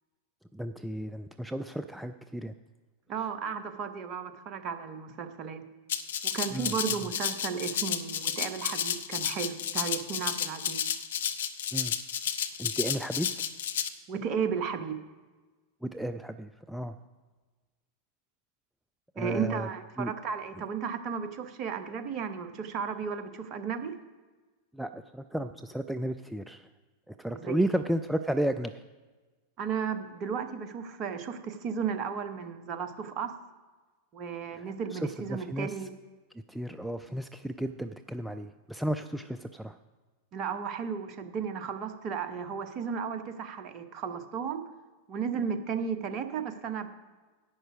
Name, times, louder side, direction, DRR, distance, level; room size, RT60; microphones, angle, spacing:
voice 1, 0.5-2.5 6.5-6.7 7.0-7.1 11.7-11.9 12.6-13.3 15.8-17.0 19.2-19.7 20.0-20.1 24.7-26.7 27.1-28.8 34.5-35.7 36.3-39.8, right 1 dB, ahead, 9 dB, 0.3 m, -33 dB
voice 2, 3.1-5.6 6.2-10.8 14.1-15.0 19.2-23.9 27.4-27.8 29.6-33.3 34.1-35.9 40.3-44.6 45.1-46.9, right 6 dB, 35° right, 9 dB, 0.9 m, -34 dB
Rattle (instrument), 5.9-13.9, left 9 dB, 60° left, 0.6 m, -32 dB
10.5 x 7.9 x 5.0 m, 1.3 s
figure-of-eight pair, 90°, 0 cm